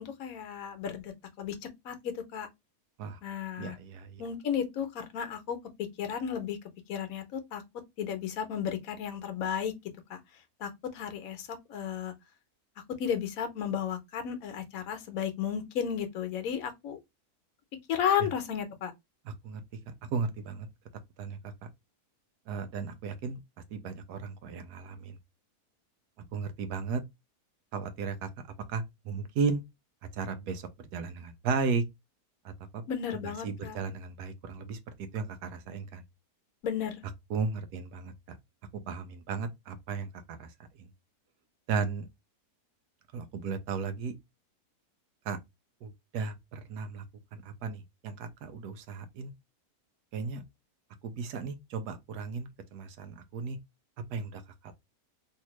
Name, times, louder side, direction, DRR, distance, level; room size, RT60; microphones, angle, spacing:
voice 1, 0.0-1.5 1.8-2.5 3.2-3.8 4.2-5.6 6.0-6.6 6.9-7.6 8.0-9.7 10.1-10.2 10.6-12.1 13.0-17.0 17.9-18.9 32.9-33.8 36.6-37.0, left 8 dB, 65° left, 1.2 m, -33 dB
voice 2, 3.6-4.2 18.2-18.3 19.3-19.6 20.0-20.7 21.2-21.5 22.5-23.4 23.7-25.2 26.3-27.0 27.7-28.3 28.7-29.6 30.1-31.8 32.4-32.8 33.2-34.8 35.1-36.0 37.3-38.4 38.9-40.5 41.7-42.1 43.1-44.1 45.2-45.4 45.8-47.0 47.3-49.3 50.1-50.4 51.0-53.6 54.1-54.7, right 5 dB, 85° right, 1.2 m, -35 dB
3.3 x 2.8 x 2.9 m
omnidirectional pair, 1.6 m